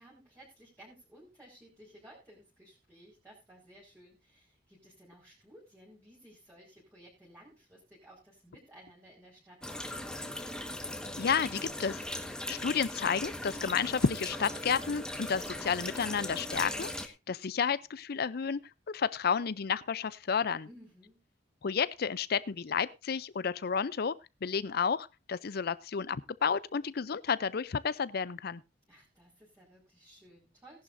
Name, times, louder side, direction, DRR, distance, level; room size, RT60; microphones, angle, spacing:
voice 1, 0.0-10.4 20.7-21.2 28.9-30.8, right 1 dB, 15° right, -7 dB, 5.1 m, -57 dB
sound 1, 9.6-17.1, left 1 dB, 5° left, 1.4 m, -39 dB
voice 2, 11.2-12.0 12.5-18.6 18.9-20.7 21.6-24.1 24.4-28.6, left 6 dB, 55° left, 18 dB, 0.5 m, -31 dB
18.0 x 11.0 x 2.6 m, 0.26 s
head